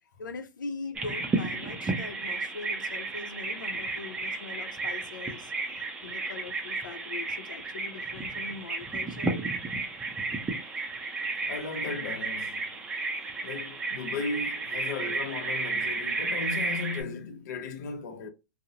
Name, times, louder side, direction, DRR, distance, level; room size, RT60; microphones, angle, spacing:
voice 1, 0.2-5.5 6.0-9.4, left 4 dB, 90° left, 0.5 m, -41 dB
Bird vocalization bird call bird song, 0.9-17.0, right 3 dB, 10° right, 0.5 m, -33 dB
voice 2, 11.5-12.7 13.4-18.3, left 4 dB, 60° left, 0.8 m, -36 dB
2.4 x 2.0 x 2.8 m
hypercardioid pair, 130°, 10 cm